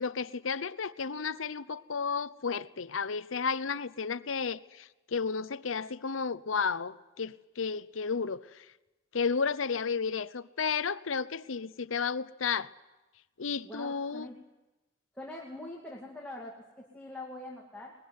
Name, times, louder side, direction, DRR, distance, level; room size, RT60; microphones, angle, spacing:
voice 1, 0.0-8.7 9.1-12.7 13.4-14.3, left 5 dB, 80° left, 0.7 m, -32 dB
voice 2, 13.6-14.4 15.1-17.9, left 1 dB, 5° left, 2.3 m, -43 dB
22.5 x 21.0 x 9.5 m
head